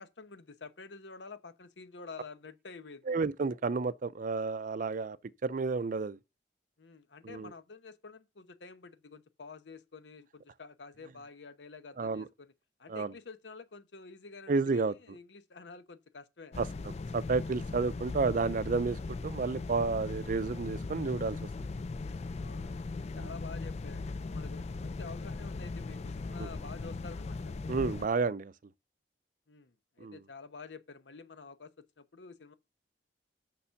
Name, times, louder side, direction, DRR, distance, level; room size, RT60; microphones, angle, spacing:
voice 1, 0.0-3.1 6.8-12.5 12.8-16.6 22.4-27.5 29.5-31.7 32.0-32.5, left 4 dB, 80° left, 0.9 m, -49 dB
voice 2, 3.1-5.2 5.4-6.2 7.2-7.5 12.0-12.3 12.9-13.1 14.5-14.9 16.6-16.7 17.1-21.4 23.2-23.3 26.4-26.5 27.7-28.5 30.0-30.2, right 4 dB, 50° right, 0.5 m, -31 dB
sound 1, 16.5-28.1, left 3 dB, 40° left, 0.4 m, -39 dB
7.0 x 6.1 x 5.6 m
head